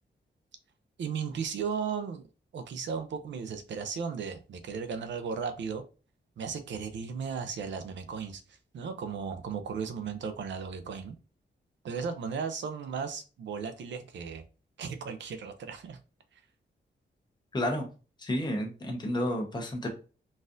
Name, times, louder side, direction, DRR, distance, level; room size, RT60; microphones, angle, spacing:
voice 1, 1.0-2.3 2.5-5.8 6.4-8.4 8.7-11.1 11.8-14.4 14.8-16.0 16.3-16.4, right 6 dB, 80° right, 0.5 m, -35 dB
voice 2, 17.5-17.9 18.2-19.9, left 1 dB, 25° left, 0.8 m, -31 dB
4.0 x 2.5 x 2.5 m
wide cardioid pair, 145°, 19 cm